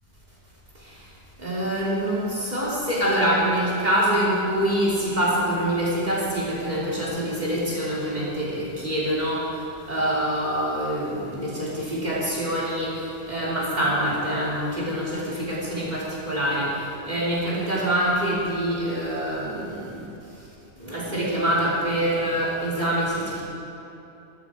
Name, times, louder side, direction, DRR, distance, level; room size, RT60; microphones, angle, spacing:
voice 1, 1.4-9.4 9.9-16.7 17.0-20.0 20.8-23.4, right 1 dB, 40° right, -6 dB, 3.5 m, -25 dB
13.5 x 12.5 x 5.0 m, 2.9 s
omnidirectional pair, 1.1 m